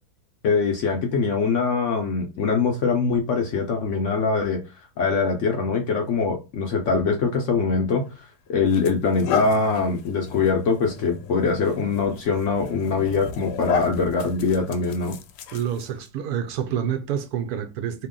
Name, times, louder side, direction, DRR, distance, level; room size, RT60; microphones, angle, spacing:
voice 1, 0.4-4.6 5.0-15.2, left 4 dB, 65° left, 0.8 m, -23 dB
sound 1, 7.9-8.1 8.7-16.1, left 7 dB, 85° left, 1.2 m, -34 dB
voice 2, 15.5-18.1, right 9 dB, 75° right, 1.0 m, -28 dB
2.9 x 2.8 x 3.6 m
omnidirectional pair, 1.7 m